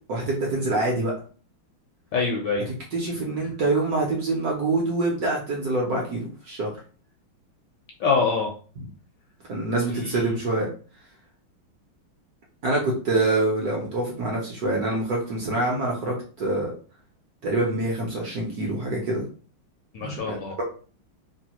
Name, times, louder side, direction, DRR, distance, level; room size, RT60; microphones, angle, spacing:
voice 1, 0.1-1.1 2.9-6.7 9.5-10.7 12.6-16.7 17.4-19.2 20.0-20.6, right 2 dB, 65° right, -2 dB, 1.0 m, -25 dB
voice 2, 2.1-2.7 8.0-8.5 9.9-10.4 19.9-20.6, left 4 dB, 75° left, 0 dB, 1.0 m, -25 dB
3.3 x 2.2 x 2.8 m, 0.39 s
omnidirectional pair, 2.3 m